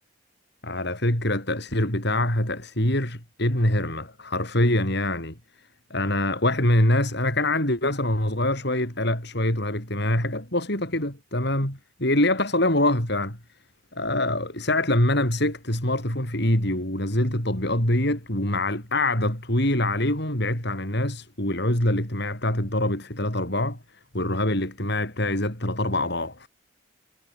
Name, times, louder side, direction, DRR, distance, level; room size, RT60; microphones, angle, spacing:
voice 1, 0.6-5.4 5.9-13.4 13.9-23.8 24.1-26.5, left 1 dB, 55° left, 6.8 m, -24 dB
head